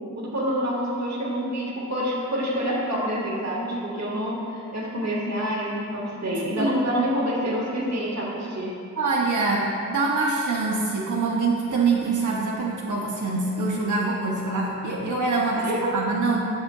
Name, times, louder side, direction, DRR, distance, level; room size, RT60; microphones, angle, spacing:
voice 1, 0.0-8.7 15.6-15.9, equal, 60° right, -5 dB, 1.4 m, -27 dB
voice 2, 9.0-16.4, right 3 dB, 85° right, -3 dB, 0.7 m, -24 dB
7.5 x 7.2 x 2.3 m, 2.5 s
wide cardioid pair, 120°, 30 cm